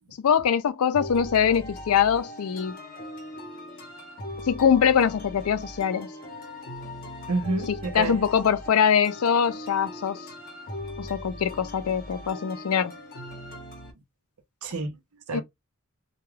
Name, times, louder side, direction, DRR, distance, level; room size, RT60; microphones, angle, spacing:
voice 1, 0.2-2.8 4.5-6.1 7.9-10.2 11.0-12.9 15.3-15.4, left 7 dB, 80° left, 0.4 m, -23 dB
sound 1, 0.9-13.9, left 1 dB, 45° left, 0.8 m, -40 dB
voice 2, 7.3-8.2 14.6-14.9 15.3-15.4, right 3 dB, 80° right, 0.6 m, -28 dB
2.2 x 2.2 x 3.1 m
head